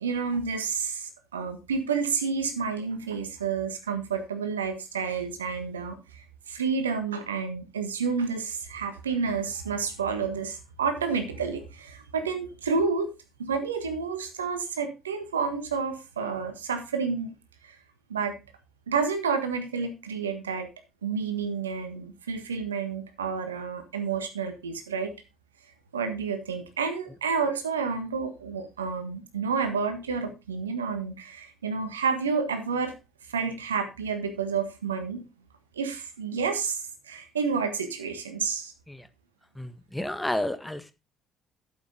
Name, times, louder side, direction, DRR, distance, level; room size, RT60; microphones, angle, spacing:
voice 1, 0.0-17.3 17.6-17.8 18.1-18.3 18.9-20.7 21.0-25.1 25.9-32.9 33.3-35.2 35.7-38.7, right 5 dB, 85° right, 8 dB, 1.5 m, -30 dB
voice 2, 39.5-40.9, left 1 dB, 10° left, 11 dB, 1.5 m, -31 dB
11.5 x 7.9 x 3.8 m, 0.27 s
figure-of-eight pair, 50°, 0 cm